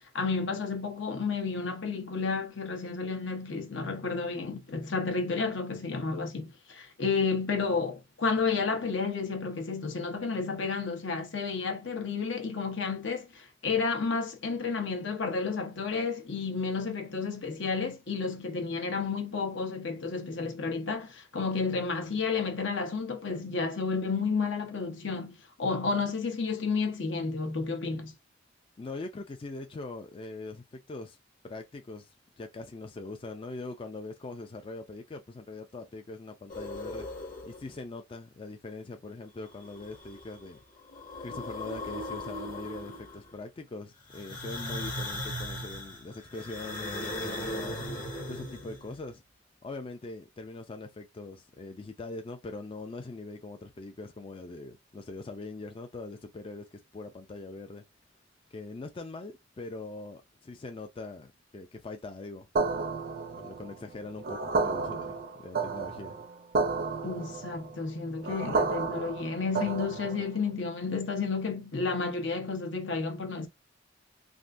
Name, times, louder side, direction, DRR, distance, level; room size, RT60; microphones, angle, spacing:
voice 1, 0.1-28.1 67.0-73.5, left 4 dB, 70° left, 0.9 m, -31 dB
voice 2, 28.8-31.2 31.4-37.1 37.4-40.6 41.2-47.8 48.3-49.2 49.6-57.8 58.5-62.5 63.4-66.2, left 3 dB, 30° left, 0.4 m, -42 dB
sound 1, 36.5-37.8 39.5-40.4 40.8-43.3 44.1-49.0, left 1 dB, 45° left, 1.2 m, -38 dB
sound 2, 62.6-70.4, right 4 dB, 50° right, 0.5 m, -32 dB
3.5 x 2.5 x 2.5 m
head